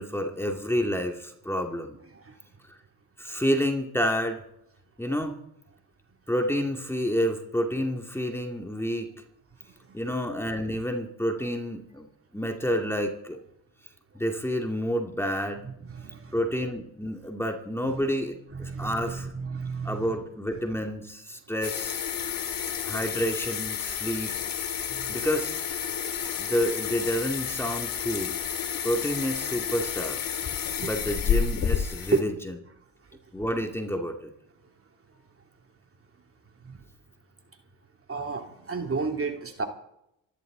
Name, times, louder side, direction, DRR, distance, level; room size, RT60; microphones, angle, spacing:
voice 1, 0.0-2.0 3.2-4.4 5.0-5.3 6.3-9.1 9.9-13.4 14.1-15.7 16.3-19.3 19.8-22.0 22.8-24.3 25.1-25.5 26.4-28.4 28.8-30.2 30.9-32.3 33.3-34.3, equal, 5° left, 3 dB, 2.4 m, -29 dB
voice 2, 9.6-10.0 15.6-16.4 17.8-18.0 18.5-20.2 22.2-22.8 24.8-25.3 30.8-30.9 32.1-32.3 33.1-33.2 35.1-35.2 36.6-36.9 38.1-39.6, right 4 dB, 35° right, 4 dB, 2.8 m, -33 dB
sound 1, 21.6-32.2, left 8 dB, 55° left, 2.2 m, -30 dB
26.0 x 11.5 x 3.9 m, 0.79 s
supercardioid pair, 65°, 40 cm